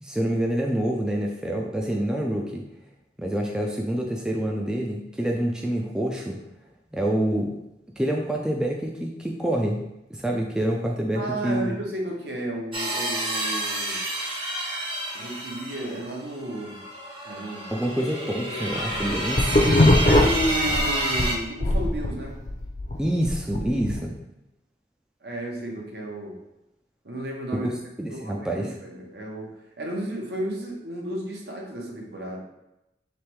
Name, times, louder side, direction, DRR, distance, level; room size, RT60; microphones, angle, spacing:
voice 1, 0.0-2.6 3.2-6.4 6.9-7.5 8.0-9.8 10.1-11.8 17.7-19.7 23.0-24.1 27.5-27.7 28.0-28.8, right 1 dB, 5° right, -1 dB, 0.3 m, -27 dB
voice 2, 11.1-14.0 15.1-16.8 17.2-17.7 20.0-22.4 25.2-26.4 27.0-27.7 28.1-32.4, right 1 dB, 70° right, 0 dB, 0.9 m, -33 dB
sound 1, 12.7-21.4, right 1 dB, 30° right, 0.8 m, -29 dB
sound 2, 18.7-21.3 21.6-24.0, left 1 dB, 40° left, 0.6 m, -21 dB
3.3 x 3.1 x 4.6 m, 0.90 s
head